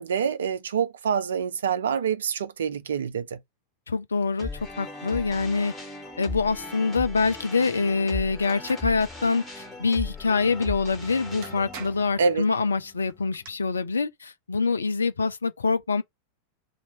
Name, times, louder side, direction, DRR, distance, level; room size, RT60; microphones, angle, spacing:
voice 1, 0.0-3.4 12.2-12.5, right 6 dB, 65° right, 0.5 m, -26 dB
voice 2, 3.9-4.5 4.8-5.7 6.2-16.0, left 4 dB, 75° left, 0.5 m, -25 dB
sound 1, 4.4-13.5, left 3 dB, 10° left, 1.8 m, -38 dB
sound 2, 8.4-8.9 10.9-11.0 11.4-12.2 13.1-13.5, right 6 dB, 45° right, 1.3 m, -43 dB
2.8 x 2.8 x 4.3 m
figure-of-eight pair, 90°, 0 cm